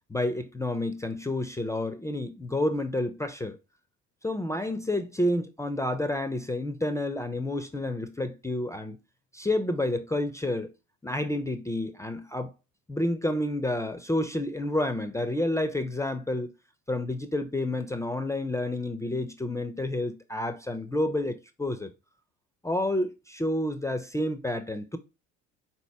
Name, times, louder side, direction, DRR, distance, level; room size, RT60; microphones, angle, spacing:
voice 1, 0.1-3.6 4.2-9.0 9.3-10.7 11.0-12.5 12.9-16.5 16.9-21.9 22.6-25.0, left 1 dB, 10° left, 0.3 m, -29 dB
3.9 x 2.9 x 3.3 m
hypercardioid pair, 65°, 39 cm